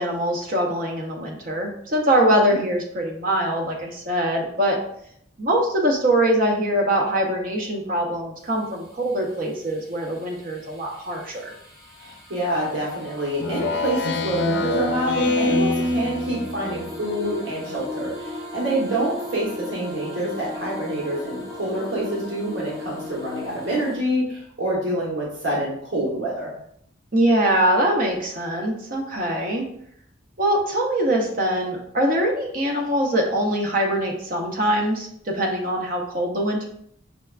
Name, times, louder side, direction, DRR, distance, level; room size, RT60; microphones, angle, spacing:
voice 1, 0.0-4.8 5.4-11.5 27.1-29.7 30.4-36.7, right 1 dB, 45° right, 0 dB, 0.6 m, -23 dB
voice 2, 2.2-2.6 12.0-26.5, right 1 dB, 75° right, -4 dB, 1.0 m, -27 dB
sound 1, 8.4-24.0, left 2 dB, 5° right, 0.6 m, -38 dB
Speech synthesizer, 13.4-16.9, left 2 dB, 60° left, 0.5 m, -24 dB
5.5 x 2.2 x 2.4 m, 0.69 s
head